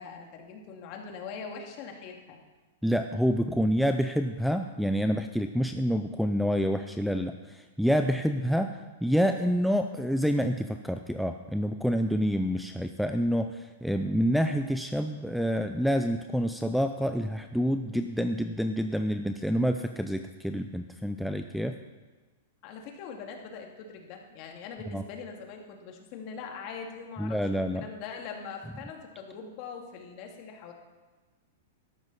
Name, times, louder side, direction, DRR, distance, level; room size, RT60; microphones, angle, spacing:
voice 1, 0.0-2.4 22.6-30.7, left 5 dB, 45° left, 2 dB, 2.2 m, -42 dB
voice 2, 2.8-21.8 24.9-25.0 27.2-27.9, equal, ahead, 7 dB, 0.4 m, -28 dB
13.0 x 11.5 x 4.1 m, 1.3 s
hypercardioid pair, 140°, 0 cm